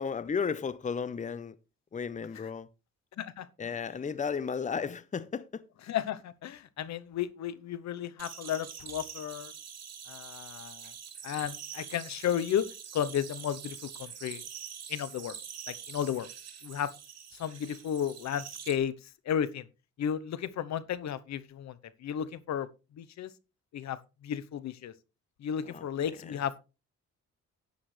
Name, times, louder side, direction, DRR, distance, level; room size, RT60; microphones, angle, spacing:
voice 1, 0.0-1.6 1.9-2.7 3.6-5.6 25.7-25.9, left 6 dB, 25° left, 0.7 m, -34 dB
voice 2, 3.2-3.5 5.9-9.5 10.1-10.9 11.2-12.7 12.9-14.4 14.9-15.4 15.7-16.3 16.6-16.9 17.3-19.7 20.0-22.7 22.9-23.3 23.7-24.9 25.4-26.5, left 9 dB, 65° left, 0.9 m, -33 dB
sound 1, 8.2-18.8, right 8 dB, 55° right, 2.7 m, -45 dB
10.5 x 9.8 x 3.3 m
cardioid pair, 90°, 30 cm